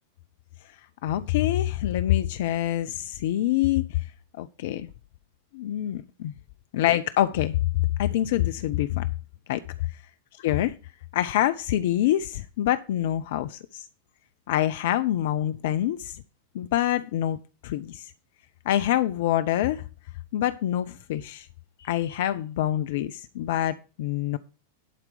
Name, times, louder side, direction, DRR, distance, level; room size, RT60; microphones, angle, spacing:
voice 1, 1.0-4.1 4.4-4.9 5.5-6.3 6.7-7.6 8.0-9.1 9.5-9.6 10.4-10.7 11.1-13.9 14.5-16.2 16.5-18.1 18.7-19.8 20.3-21.5 21.8-24.4, left 13 dB, 55° left, 12 dB, 0.4 m, -26 dB
11.5 x 4.4 x 6.6 m, 0.36 s
figure-of-eight pair, 90°, 0 cm